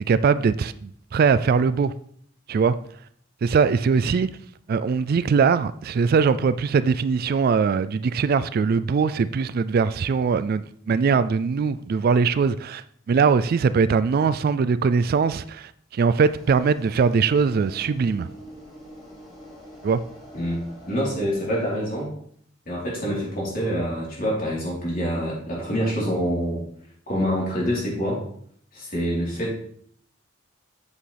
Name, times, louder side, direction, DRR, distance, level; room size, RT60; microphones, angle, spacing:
voice 1, 0.1-1.9 2.5-2.7 3.4-4.3 4.7-18.3 19.8-20.0, right 5 dB, 50° right, 0.3 m, -21 dB
sound 1, 16.2-22.0, equal, ahead, 2.9 m, -45 dB
voice 2, 20.3-22.1 22.7-26.6 27.1-28.2 28.7-29.5, equal, 50° left, 3.7 m, -26 dB
8.2 x 7.4 x 3.4 m
head